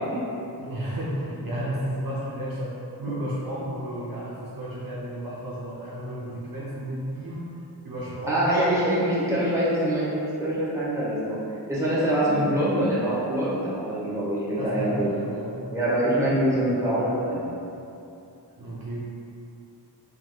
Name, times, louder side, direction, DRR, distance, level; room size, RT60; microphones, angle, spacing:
voice 1, 0.6-7.5 7.8-8.8 14.6-15.6 18.6-19.0, right 1 dB, 55° right, -7 dB, 0.8 m, -32 dB
voice 2, 8.3-11.4 11.7-15.1 15.7-17.5, right 1 dB, 5° right, -9 dB, 1.5 m, -24 dB
4.5 x 3.6 x 2.3 m, 2.7 s
cardioid pair, 45°, 42 cm